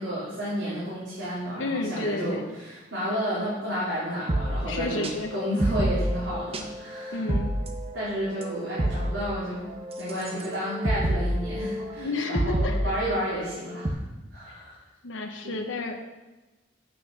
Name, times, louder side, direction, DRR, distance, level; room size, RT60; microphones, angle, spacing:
voice 1, 0.0-7.3 7.9-9.7 10.0-14.0 14.3-14.8 15.4-15.5, equal, 70° right, -11 dB, 3.6 m, -31 dB
voice 2, 1.6-2.4 4.6-5.3 7.1-7.5 12.0-13.0 14.5-14.6 15.0-16.0, left 2 dB, 75° left, 3 dB, 0.9 m, -31 dB
sound 1, 4.3-13.9, right 1 dB, 30° right, 0.8 m, -29 dB
8.6 x 6.0 x 5.8 m, 1.1 s
head